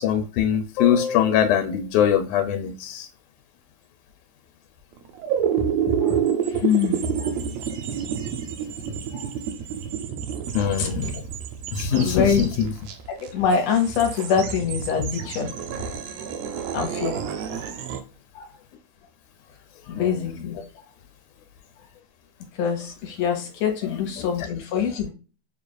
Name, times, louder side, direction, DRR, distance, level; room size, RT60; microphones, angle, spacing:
voice 1, 0.0-3.1 10.5-11.1 11.7-12.5 20.0-20.2, left 9 dB, 90° left, 2.0 m, -22 dB
sound 1, 4.9-18.0, right 8 dB, 75° right, 1.7 m, -29 dB
voice 2, 6.0-7.3 9.1-9.2 10.8-11.2 11.9-12.7 13.1-15.5 16.7-17.2 18.3-18.5 19.9-20.6 22.5-25.1, left 6 dB, 70° left, 2.0 m, -25 dB
6.9 x 2.4 x 2.2 m
omnidirectional pair, 3.3 m